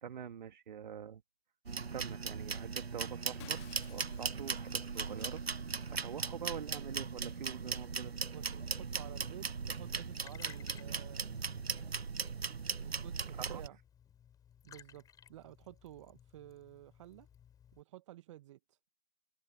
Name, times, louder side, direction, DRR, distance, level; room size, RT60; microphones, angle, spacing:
voice 1, 0.0-1.2 1.9-5.4 5.9-8.1 13.4-13.6, right 8 dB, 50° right, 2.7 m, -45 dB
sound 1, 1.7-13.7, right 5 dB, 85° right, 1.0 m, -39 dB
Shatter, 3.4-6.1, left 20 dB, 25° left, 2.2 m, -59 dB
voice 2, 8.3-11.3 12.8-13.8 14.6-17.3 17.7-18.6, right 14 dB, 30° right, 1.5 m, -52 dB
Liquid, 9.7-17.8, left 9 dB, 10° left, 6.8 m, -60 dB
open air
figure-of-eight pair, 140°, 30 cm